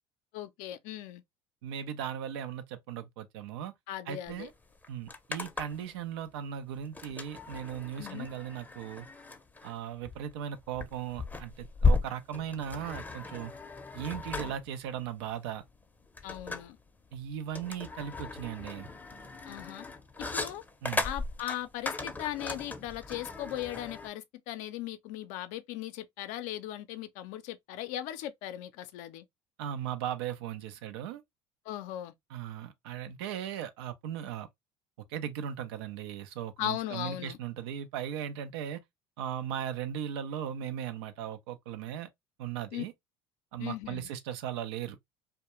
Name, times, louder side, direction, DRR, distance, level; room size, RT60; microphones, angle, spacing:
voice 1, 0.3-1.2 3.9-4.5 8.0-8.3 16.2-16.8 19.5-19.9 20.3-20.6 21.0-29.2 31.7-32.1 36.6-37.4 42.7-42.8 43.6-44.1, left 13 dB, 70° left, 0.4 m, -38 dB
voice 2, 1.6-3.7 4.1-4.5 4.9-9.1 9.6-13.5 13.9-15.6 17.1-18.9 20.8-21.1 29.6-31.2 32.3-34.5 35.1-38.8 39.2-42.1 42.4-42.9 43.5-45.0, right 9 dB, 80° right, 0.5 m, -37 dB
sound 1, 4.3-4.4 4.6-5.9 6.9-24.1, left 3 dB, 15° left, 0.6 m, -35 dB
2.3 x 2.1 x 2.9 m
hypercardioid pair, 75°, 14 cm